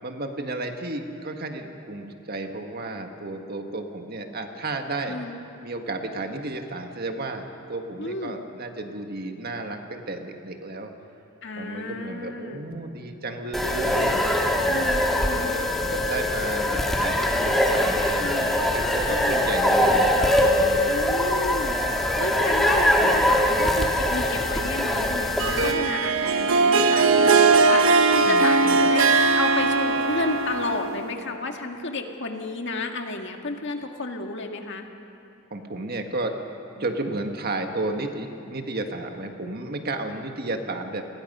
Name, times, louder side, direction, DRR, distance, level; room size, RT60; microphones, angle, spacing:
voice 1, 0.0-5.2 5.6-10.9 11.5-14.5 15.3-21.0 21.8-22.3 28.2-28.8 35.5-36.3 36.7-41.0, right 2 dB, 45° right, 4 dB, 1.7 m, -33 dB
voice 2, 5.1-5.4 8.0-8.4 11.4-12.6 14.7-15.7 18.2-18.6 19.1-19.5 20.9-21.8 22.2-34.9, left 2 dB, 60° left, 3 dB, 1.9 m, -32 dB
sound 1, 13.5-25.7, left 1 dB, ahead, 1.9 m, -22 dB
Harp, 25.4-31.2, right 4 dB, 70° right, 1.3 m, -20 dB
30.0 x 20.5 x 5.6 m, 2.6 s
head